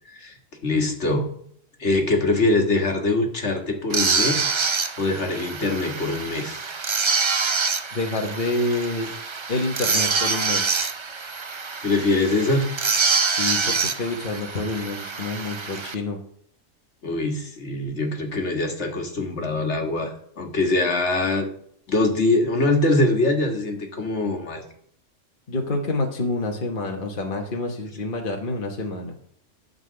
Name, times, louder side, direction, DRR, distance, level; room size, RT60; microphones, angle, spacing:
voice 1, 0.6-1.3 1.8-6.6 11.8-12.7 17.0-21.5 21.9-24.6, left 2 dB, 60° left, 2 dB, 1.8 m, -23 dB
sound 1, 3.9-15.9, right 4 dB, 35° right, 0.4 m, -26 dB
voice 2, 7.9-9.1 9.5-10.7 13.2-16.2 25.5-29.1, left 2 dB, 45° left, 1 dB, 1.2 m, -27 dB
11.5 x 4.0 x 7.6 m, 0.66 s
omnidirectional pair, 1.3 m